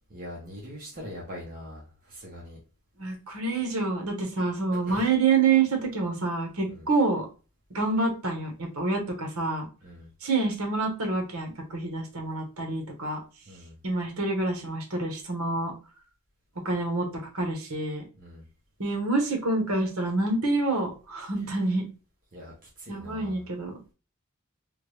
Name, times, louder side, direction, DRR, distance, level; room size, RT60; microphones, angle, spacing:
voice 1, 0.1-2.6 4.7-5.0 6.7-6.8 9.8-10.1 13.5-13.8 18.2-18.5 22.3-23.4, equal, 40° right, -4 dB, 1.0 m, -42 dB
voice 2, 3.0-7.3 7.7-9.7 10.2-13.2 13.8-15.7 16.6-18.0 18.8-21.8 22.9-23.8, right 3 dB, 70° right, 2 dB, 1.2 m, -27 dB
3.6 x 2.2 x 3.2 m, 0.34 s
head